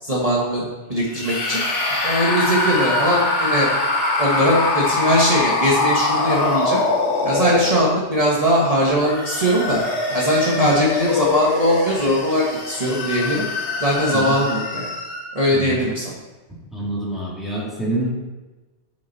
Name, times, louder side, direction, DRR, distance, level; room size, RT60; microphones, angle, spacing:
voice 1, 0.0-0.6 0.9-1.6 2.0-3.7 4.2-6.8 7.2-9.8 10.1-13.5 13.8-14.9 15.3-16.1, equal, 30° right, -5 dB, 1.5 m, -20 dB
sound 1, 1.1-8.2 8.9-15.4, left 3 dB, 75° left, 1.5 m, -23 dB
voice 2, 15.5-15.9 16.7-18.1, right 1 dB, ahead, -6 dB, 2.3 m, -26 dB
9.1 x 6.6 x 4.1 m, 1.2 s
omnidirectional pair, 1.2 m